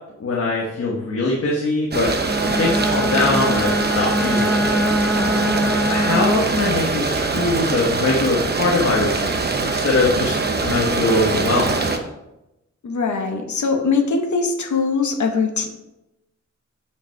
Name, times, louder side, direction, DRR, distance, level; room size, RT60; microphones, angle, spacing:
voice 1, 0.2-2.1 2.6-4.6 5.7-11.8, left 2 dB, 50° left, -3 dB, 1.2 m, -22 dB
sound 1, 1.9-12.0, right 4 dB, 35° right, 0.8 m, -23 dB
Bowed string instrument, 2.2-6.7, equal, 5° left, 0.6 m, -23 dB
voice 2, 5.2-5.7 12.8-15.7, left 4 dB, 75° left, 4 dB, 1.1 m, -22 dB
8.5 x 5.5 x 4.6 m, 0.93 s
wide cardioid pair, 180°, 29 cm